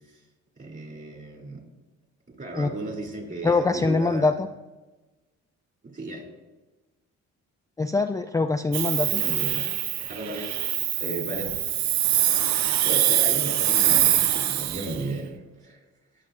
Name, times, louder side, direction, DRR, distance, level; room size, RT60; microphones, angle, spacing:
voice 1, 0.6-1.6 2.4-4.3 5.8-6.2 9.1-10.6 11.0-11.6 12.8-15.4 15.6-15.8, right 2 dB, 35° right, 0 dB, 3.0 m, -34 dB
voice 2, 3.4-4.5 7.8-9.2, left 3 dB, 10° left, 5 dB, 0.3 m, -23 dB
Hiss, 8.7-15.0, right 12 dB, 65° right, 0.5 m, -24 dB
19.0 x 6.5 x 2.6 m, 1.2 s
cardioid pair, 90°, 30 cm